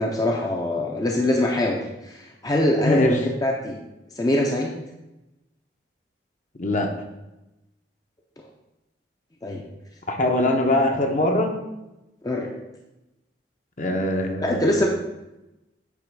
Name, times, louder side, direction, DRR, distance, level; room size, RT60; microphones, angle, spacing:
voice 1, 0.0-3.8 4.1-4.7 9.4-9.6 12.2-12.5 14.4-14.9, left 1 dB, 20° left, 0 dB, 0.6 m, -23 dB
voice 2, 2.8-3.2 6.6-6.9 10.1-11.6 13.8-14.9, left 1 dB, 45° left, 3 dB, 0.9 m, -22 dB
8.4 x 3.2 x 6.1 m, 0.97 s
head